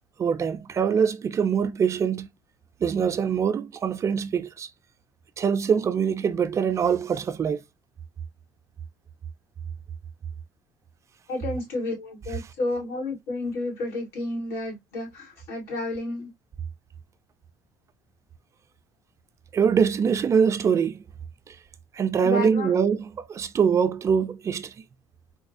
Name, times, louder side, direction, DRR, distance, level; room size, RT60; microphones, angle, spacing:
voice 1, 0.2-2.3 2.8-4.7 5.4-7.6 19.5-21.0 21.5-21.6 21.9-24.7, right 7 dB, 35° right, 0.4 m, -23 dB
voice 2, 11.3-16.3 22.2-22.7, left 2 dB, 90° left, 2.6 m, -31 dB
4.1 x 2.4 x 2.5 m
supercardioid pair, 90°, 9 cm